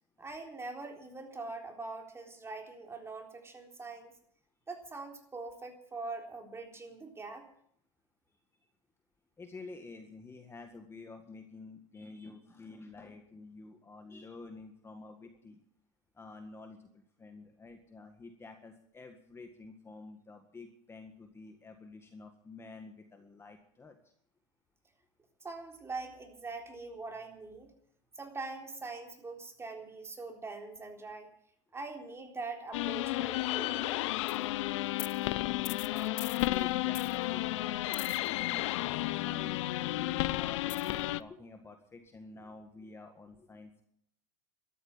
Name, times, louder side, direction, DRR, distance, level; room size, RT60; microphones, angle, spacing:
voice 1, 0.2-4.1 4.7-7.4 25.4-27.7 28.2-31.3 31.7-34.0, right 3 dB, 15° right, 3 dB, 3.8 m, -43 dB
voice 2, 9.4-15.6 16.2-24.0 35.9-43.8, left 3 dB, 15° left, 6 dB, 1.7 m, -49 dB
sound 1, 32.7-41.2, left 17 dB, 80° left, 0.7 m, -32 dB
13.5 x 13.0 x 7.3 m, 0.68 s
supercardioid pair, 120°, 15 cm